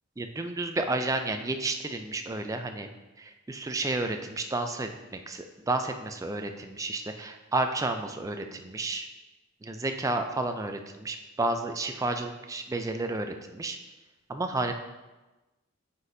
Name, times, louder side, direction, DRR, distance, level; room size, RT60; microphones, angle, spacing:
voice 1, 0.2-2.9 3.2-9.1 9.6-13.8 14.3-14.7, right 2 dB, 15° right, 6 dB, 0.4 m, -31 dB
9.5 x 4.1 x 2.6 m, 1.1 s
head